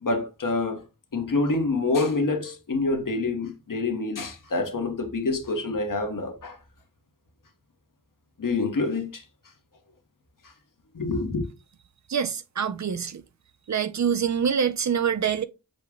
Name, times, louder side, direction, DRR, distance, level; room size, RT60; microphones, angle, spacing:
voice 1, 0.0-0.8 1.1-6.6 8.4-9.2 10.9-11.4, left 3 dB, 60° left, 1.0 m, -27 dB
voice 2, 12.1-13.2 13.7-15.4, right 7 dB, 50° right, 0.4 m, -25 dB
6.3 x 2.2 x 3.4 m
wide cardioid pair, 65°, 37 cm